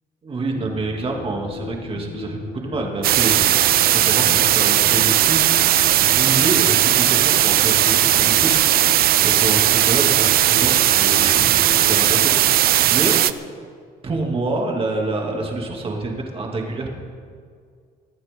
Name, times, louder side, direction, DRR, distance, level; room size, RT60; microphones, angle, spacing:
voice 1, 0.2-5.4 5.9-8.9 9.2-13.2 14.0-16.9, right 2 dB, 35° right, 0 dB, 2.8 m, -27 dB
sound 1, 0.5-12.4, left 5 dB, 65° left, 1.5 m, -36 dB
sound 2, 3.0-13.3, right 13 dB, 65° right, 0.6 m, -17 dB
22.0 x 14.0 x 3.9 m, 2.1 s
cardioid pair, 110°, 17 cm